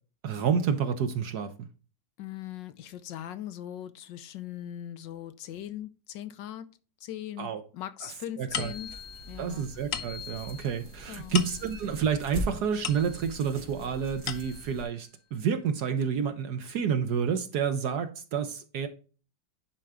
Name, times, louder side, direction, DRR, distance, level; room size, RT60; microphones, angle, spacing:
voice 1, 0.2-1.7 7.4-7.6 8.4-8.7 9.4-18.9, right 7 dB, 70° right, 1.3 m, -29 dB
voice 2, 2.2-6.7 7.0-8.9 9.2-9.7 11.1-11.3, left 11 dB, 85° left, 1.5 m, -40 dB
sound 1, 8.5-13.5 14.0-14.9, left 8 dB, 65° left, 1.3 m, -38 dB
sound 2, 8.5-14.8, right 1 dB, 85° right, 3.0 m, -42 dB
10.5 x 4.4 x 3.6 m
omnidirectional pair, 1.9 m